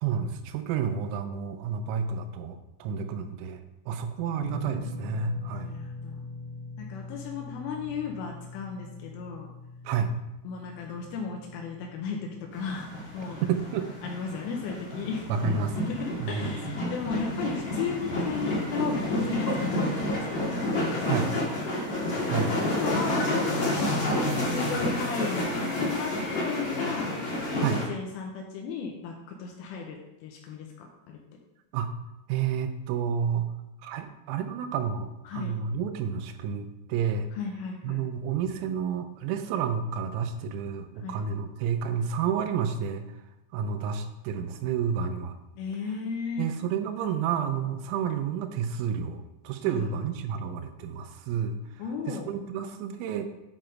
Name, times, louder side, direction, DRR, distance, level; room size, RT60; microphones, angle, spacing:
voice 1, 0.0-3.6 3.9-5.8 9.9-10.1 13.4-13.9 15.3-15.8 16.2-16.6 21.1-21.3 22.3-22.6 27.6-27.8 31.7-31.9 32.3-33.5 33.8-37.3 37.8-43.1 43.5-45.4 46.4-51.6 52.1-53.3, right 7 dB, 85° right, 7 dB, 3.4 m, -30 dB
sound 1, 4.3-16.6 16.8-17.1 18.8-18.9, left 3 dB, 55° right, 2.7 m, -43 dB
voice 2, 5.5-6.2 6.8-9.5 10.4-12.2 12.5-12.9 13.1-13.4 14.0-15.3 15.8-21.7 22.6-24.1 24.4-27.1 27.5-31.2 35.3-35.5 37.4-38.0 41.0-41.2 45.6-46.5 49.6-49.9 51.8-52.3, left 5 dB, 80° left, 1 dB, 3.2 m, -35 dB
sound 2, 12.5-27.8, left 1 dB, 55° left, 1.2 m, -30 dB
9.8 x 4.5 x 5.1 m, 0.96 s
omnidirectional pair, 5.9 m